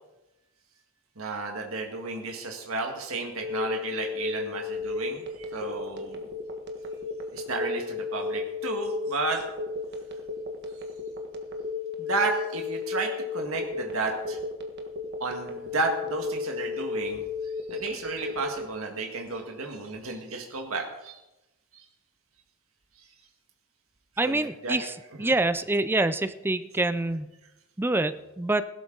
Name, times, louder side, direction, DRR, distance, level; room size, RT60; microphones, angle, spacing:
voice 1, 1.2-6.3 7.3-9.4 12.0-14.4 15.2-17.2 17.7-21.2 21.7-21.8 24.2-24.8 25.2-25.3, right 3 dB, 70° right, 2 dB, 1.7 m, -32 dB
Telephone, 3.4-18.7, left 4 dB, 50° right, 1.6 m, -33 dB
voice 2, 24.2-24.9 25.2-27.3 27.8-28.6, right 2 dB, 10° right, 13 dB, 0.4 m, -26 dB
16.5 x 12.5 x 3.9 m, 1.0 s
head